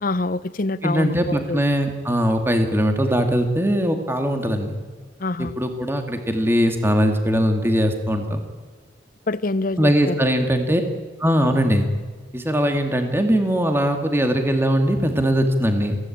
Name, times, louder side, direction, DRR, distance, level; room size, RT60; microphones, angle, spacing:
voice 1, 0.0-1.6 5.2-5.6 9.3-10.2, left 2 dB, 45° left, 17 dB, 0.7 m, -26 dB
voice 2, 0.8-4.8 5.4-8.4 9.8-10.8 11.2-11.9 12.3-16.0, equal, 10° right, 5 dB, 2.3 m, -20 dB
25.0 x 17.0 x 8.8 m, 1.5 s
head